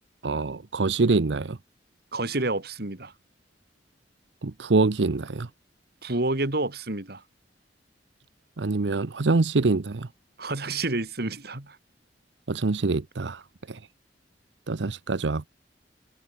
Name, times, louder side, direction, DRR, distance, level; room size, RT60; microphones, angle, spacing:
voice 1, 0.2-1.6 4.4-5.5 8.6-10.1 12.5-13.8 14.7-15.5, right 3 dB, 85° right, 0.8 m, -25 dB
voice 2, 2.1-3.1 6.0-7.2 10.4-11.8, right 2 dB, 60° right, 2.7 m, -29 dB
head